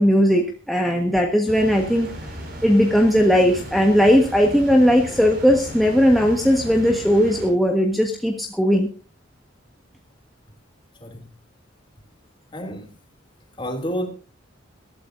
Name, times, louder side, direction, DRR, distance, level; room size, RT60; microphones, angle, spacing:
voice 1, 0.0-2.1 2.6-8.9, equal, ahead, 1.4 m, -18 dB
sound 1, 1.5-7.5, equal, 50° right, 5.6 m, -36 dB
voice 2, 12.5-12.9 13.6-14.1, equal, 25° left, 2.7 m, -29 dB
21.5 x 13.0 x 2.6 m
head